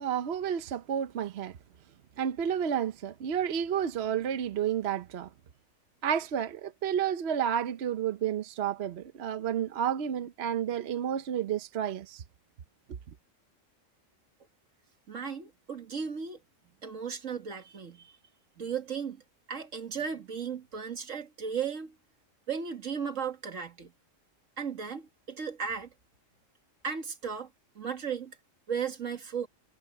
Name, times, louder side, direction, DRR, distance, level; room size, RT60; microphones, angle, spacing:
voice 1, 0.0-1.6 2.2-5.3 6.0-12.2, right 9 dB, 60° right, 1.0 m, -31 dB
voice 2, 15.1-16.4 16.8-18.1 18.6-19.2 19.5-22.0 22.5-23.9 24.6-25.9 26.8-27.5 27.8-28.4 28.7-29.5, right 6 dB, 85° right, 2.2 m, -35 dB
omnidirectional pair, 1.3 m